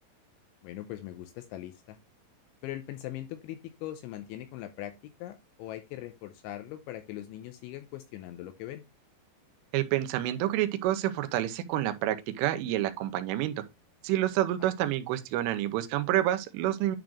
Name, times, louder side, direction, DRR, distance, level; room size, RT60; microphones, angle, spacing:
voice 1, 0.6-2.0 2.6-8.8, left 13 dB, 85° left, 2.7 m, -41 dB
voice 2, 9.7-13.6 14.0-17.0, right 13 dB, 80° right, 3.1 m, -28 dB
10.5 x 4.1 x 3.0 m
omnidirectional pair, 6.0 m